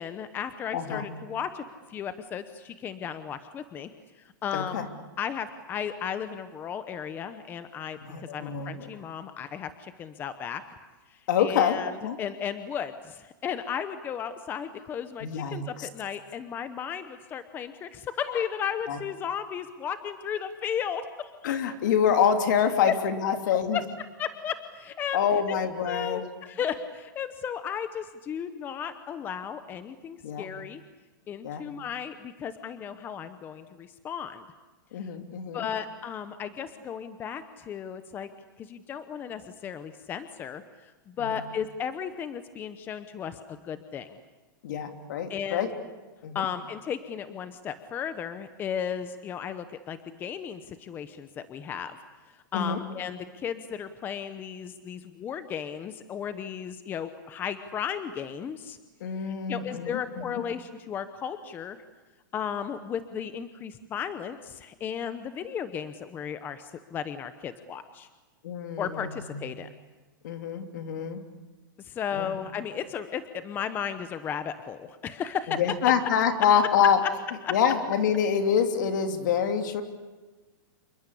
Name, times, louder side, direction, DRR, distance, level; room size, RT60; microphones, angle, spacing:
voice 1, 0.0-3.9 4.2-4.9 5.2-10.6 11.1-21.5 22.9-23.0 23.7-23.8 24.2-25.2 25.5-25.6 25.8-30.8 31.3-34.4 35.0-35.1 35.5-38.3 38.6-44.2 45.3-45.7 46.3-52.0 52.5-58.8 59.2-61.8 62.3-68.1 68.8-69.7 71.8-75.6 77.4-77.5, left 8 dB, 20° left, 11 dB, 0.9 m, -35 dB
voice 2, 0.7-1.0 4.5-4.9 8.0-8.9 11.3-12.2 15.2-15.9 18.9-19.0 21.4-23.8 25.1-26.3 30.2-30.5 31.4-31.6 34.9-35.7 41.2-41.4 44.6-45.7 46.2-46.4 52.5-52.8 59.0-60.4 68.4-69.4 70.2-71.2 72.1-72.4 75.5-77.0 77.5-79.8, left 7 dB, 65° left, 6 dB, 3.2 m, -26 dB
28.5 x 24.0 x 8.5 m, 1.3 s
supercardioid pair, 160°, 11 cm